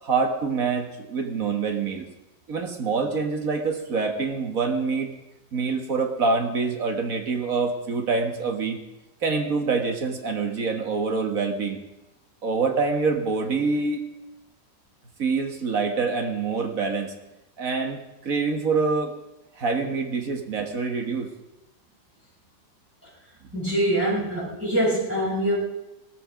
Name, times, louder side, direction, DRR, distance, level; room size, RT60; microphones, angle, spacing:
voice 1, 0.0-2.1 2.5-5.1 5.5-8.8 9.2-11.8 12.4-14.0 15.2-17.1 17.6-19.1 19.6-21.3, right 4 dB, 50° right, 5 dB, 1.9 m, -26 dB
voice 2, 23.5-25.6, right 1 dB, 5° right, -7 dB, 7.9 m, -24 dB
18.0 x 14.0 x 5.1 m, 0.94 s
omnidirectional pair, 1.9 m